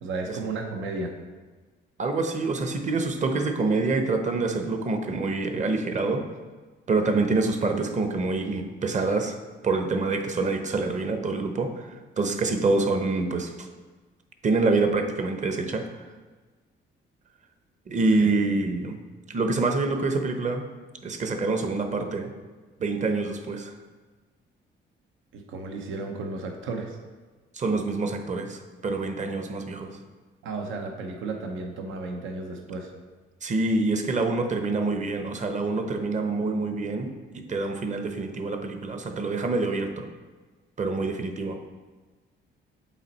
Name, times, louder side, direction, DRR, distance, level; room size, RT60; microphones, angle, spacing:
voice 1, 0.0-1.1 18.2-18.3 25.3-27.0 30.4-32.9, right 3 dB, 85° right, 3 dB, 0.8 m, -33 dB
voice 2, 2.0-6.3 6.9-9.4 9.6-13.7 14.4-15.9 17.9-19.0 19.3-20.6 21.0-22.3 22.8-23.7 27.5-30.0 33.4-40.1 40.8-41.6, right 3 dB, 35° right, 6 dB, 0.8 m, -26 dB
7.3 x 4.2 x 4.1 m, 1.3 s
cardioid pair, 90°, 20 cm